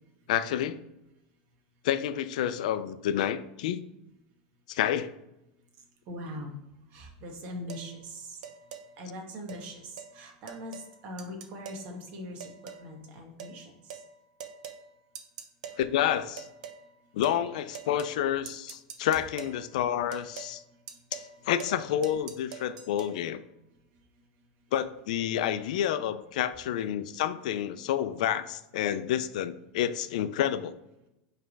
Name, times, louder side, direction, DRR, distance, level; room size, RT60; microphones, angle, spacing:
voice 1, 0.3-0.8 1.8-3.8 4.7-5.1 15.8-16.5 17.1-20.6 21.1-23.4 24.7-30.7, left 10 dB, 75° left, 12 dB, 0.4 m, -29 dB
voice 2, 6.1-6.5 6.9-8.4 9.0-12.5 12.8-14.0 21.3-21.4, equal, 40° right, 1 dB, 1.2 m, -41 dB
sound 1, 7.7-7.9 8.4-8.9 9.5-9.6 10.0-10.1 10.5-10.9 11.2-11.9 12.4-12.9 13.4-13.6 13.9-14.1 14.4-14.8 15.2-15.8 16.4-16.8 17.2-17.4 17.7-18.2 18.5-19.6 20.1-20.5 20.9-21.3 21.6-21.8 22.0-23.1, right 7 dB, 75° right, 0.8 m, -43 dB
5.7 x 3.3 x 5.1 m, 0.89 s
supercardioid pair, 155°, 4 cm